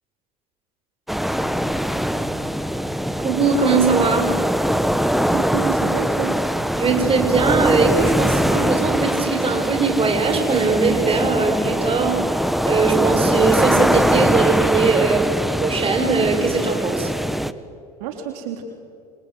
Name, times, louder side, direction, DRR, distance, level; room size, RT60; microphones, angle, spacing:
sound 1, 1.1-17.5, equal, ahead, 1.3 m, -22 dB
voice 1, 3.2-4.3 6.8-12.2 12.6-15.3 15.6-17.1, right 4 dB, 30° right, 5 dB, 6.4 m, -20 dB
voice 2, 5.3-6.4 18.0-18.6, right 8 dB, 70° right, 4 dB, 3.3 m, -29 dB
28.0 x 25.5 x 8.0 m, 2.4 s
hypercardioid pair, 85°, 20 cm